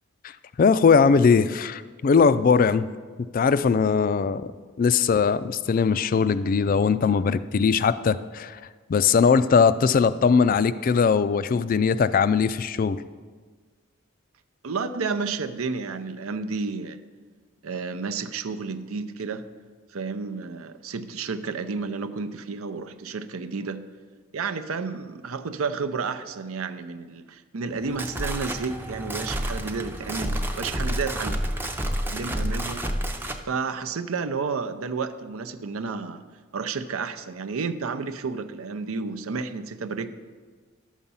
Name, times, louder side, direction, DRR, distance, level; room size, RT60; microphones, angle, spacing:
voice 1, 0.6-2.9 3.3-4.5 4.8-8.6 8.9-13.0, left 5 dB, 40° left, 15 dB, 0.3 m, -20 dB
voice 2, 14.6-17.0 17.6-19.5 19.9-23.8 24.3-31.3 32.1-32.9 33.5-36.2 36.5-40.1, right 4 dB, 85° right, 9 dB, 0.6 m, -31 dB
sound 1, 27.7-33.4, equal, 10° right, 0.5 m, -29 dB
11.0 x 7.2 x 5.5 m, 1.5 s
head